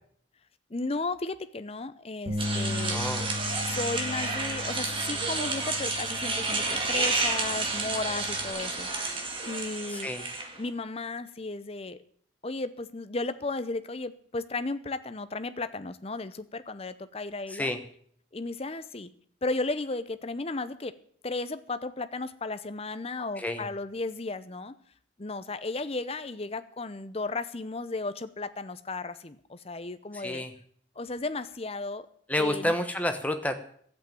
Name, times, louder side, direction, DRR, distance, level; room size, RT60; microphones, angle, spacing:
voice 1, 0.7-3.0 3.6-10.1 10.6-12.0 12.4-17.7 18.3-19.1 19.4-20.9 21.2-24.7 25.2-30.4 31.0-32.1 32.4-32.7, left 3 dB, 30° left, 12 dB, 0.7 m, -34 dB
Bass guitar, 2.3-8.5, left 2 dB, 55° right, 2.2 m, -37 dB
sound 1, 2.4-10.6, right 3 dB, 25° right, 2.0 m, -31 dB
voice 2, 2.9-3.3 10.0-10.3 17.5-17.8 23.4-23.7 30.1-30.5 32.3-33.5, left 1 dB, 10° left, 6 dB, 1.1 m, -29 dB
12.5 x 8.4 x 9.2 m, 0.63 s
head